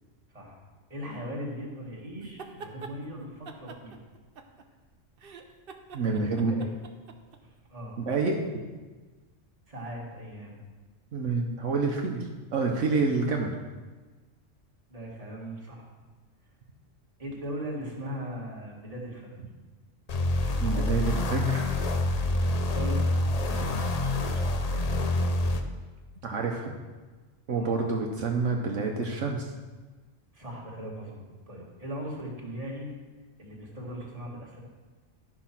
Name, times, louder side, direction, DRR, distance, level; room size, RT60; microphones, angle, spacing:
voice 1, 0.3-0.6 0.9-4.0 6.0-6.7 7.4-8.0 9.7-10.6 14.9-15.9 17.2-19.3 22.3-24.9 27.5-27.8 30.3-32.9 33.4-34.6, equal, 30° right, -3 dB, 2.0 m, -39 dB
sound 1, 2.2-2.9 3.5-4.8 5.2-7.4, right 5 dB, 50° right, 0.9 m, -45 dB
voice 2, 5.9-6.7 8.0-8.6 11.1-13.5 20.6-21.8 26.2-26.8 27.5-29.5, right 4 dB, 75° right, 1 dB, 1.3 m, -28 dB
sound 2, 20.1-25.6, left 2 dB, 40° left, 0.6 m, -27 dB
12.0 x 4.9 x 5.9 m, 1.3 s
omnidirectional pair, 1.3 m